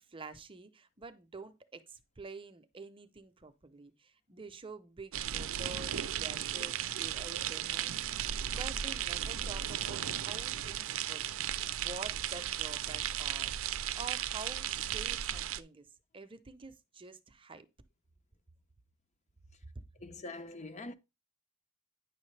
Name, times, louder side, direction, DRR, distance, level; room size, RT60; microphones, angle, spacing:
voice 1, 0.0-11.2 11.6-13.5 14.0-15.9 16.1-17.7, right 3 dB, 25° right, 0.7 m, -48 dB
sound 1, 5.1-15.6, right 10 dB, 65° right, 0.5 m, -35 dB
voice 2, 20.0-20.9, left 2 dB, 35° left, 0.7 m, -43 dB
9.9 x 6.1 x 3.3 m
head